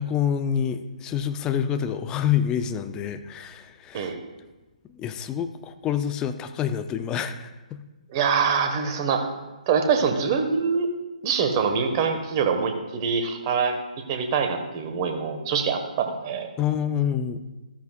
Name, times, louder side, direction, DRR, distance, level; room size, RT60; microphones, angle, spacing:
voice 1, 0.0-4.1 4.9-7.8 16.6-17.4, left 9 dB, 15° left, 9 dB, 0.6 m, -27 dB
voice 2, 8.1-9.3 9.7-10.9 11.2-13.8 14.1-16.5, right 6 dB, 30° right, 5 dB, 1.4 m, -24 dB
14.0 x 13.0 x 2.4 m, 1.1 s
figure-of-eight pair, 135°, 4 cm